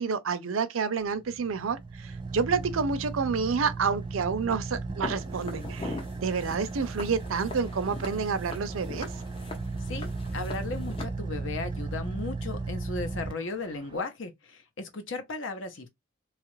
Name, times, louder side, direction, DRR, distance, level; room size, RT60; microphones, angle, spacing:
voice 1, 0.0-6.0 6.2-9.1, right 5 dB, 90° right, 0.5 m, -29 dB
Car / Idling, 1.0-14.0, right 3 dB, 25° right, 0.5 m, -36 dB
Walk footsteps, 5.0-11.0, left 2 dB, 25° left, 0.8 m, -41 dB
voice 2, 9.9-15.9, left 3 dB, 70° left, 0.8 m, -36 dB
3.0 x 2.4 x 3.0 m
head